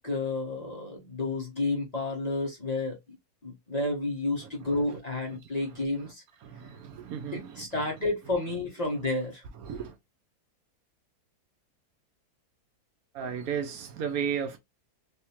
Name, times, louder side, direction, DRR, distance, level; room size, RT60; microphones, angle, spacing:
voice 1, 0.0-3.0 3.4-6.2 7.3-9.4, left 2 dB, 30° left, 1.0 m, -31 dB
voice 2, 6.4-7.7 9.7-9.9 13.1-14.6, right 7 dB, 70° right, 1.0 m, -34 dB
3.5 x 2.7 x 2.8 m
omnidirectional pair, 1.7 m